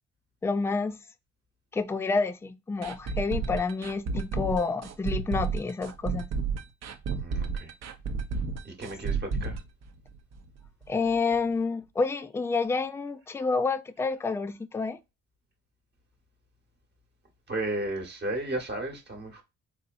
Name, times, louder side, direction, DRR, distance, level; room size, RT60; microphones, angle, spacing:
voice 1, 0.4-1.0 1.7-6.3 10.9-15.0, left 4 dB, 10° left, 0.3 m, -29 dB
sound 1, 2.8-10.6 10.8-10.9 11.3-11.4, right 4 dB, 60° right, 0.7 m, -31 dB
voice 2, 7.2-7.7 8.6-9.6 17.5-19.4, right 2 dB, 35° right, 1.2 m, -34 dB
4.1 x 2.8 x 2.5 m
cardioid pair, 90°, 30 cm